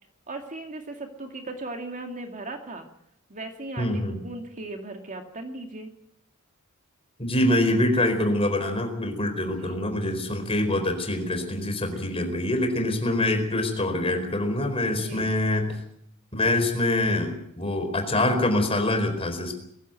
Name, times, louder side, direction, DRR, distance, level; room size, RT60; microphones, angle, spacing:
voice 1, 0.3-2.9 3.3-5.9 9.6-9.8 11.9-12.0 14.9-15.3, right 2 dB, 35° right, 4 dB, 2.4 m, -37 dB
voice 2, 3.8-4.2 7.2-15.7 16.3-19.6, left 1 dB, 25° left, 6 dB, 4.5 m, -25 dB
22.0 x 15.5 x 9.2 m, 0.74 s
head